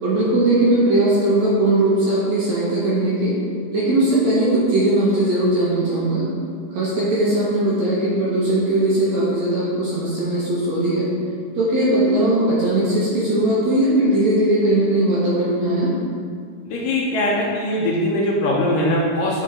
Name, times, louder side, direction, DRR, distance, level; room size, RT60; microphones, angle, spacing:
voice 1, 0.0-3.3 3.7-6.3 6.7-11.1 11.5-15.9, right 1 dB, 65° right, -7 dB, 2.0 m, -19 dB
voice 2, 16.6-19.4, left 1 dB, 75° left, -3 dB, 2.2 m, -21 dB
8.8 x 4.5 x 3.7 m, 2.1 s
omnidirectional pair, 4.2 m